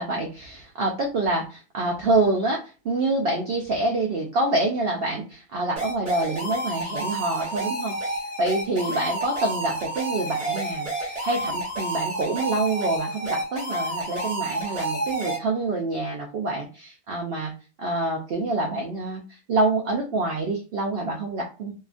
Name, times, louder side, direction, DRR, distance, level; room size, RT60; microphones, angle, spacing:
voice 1, 0.0-17.5 17.8-21.7, right 2 dB, 85° right, 0 dB, 0.5 m, -26 dB
sound 1, 5.8-15.4, right 1 dB, 30° right, 0.9 m, -30 dB
2.7 x 2.3 x 2.4 m, 0.33 s
omnidirectional pair, 1.6 m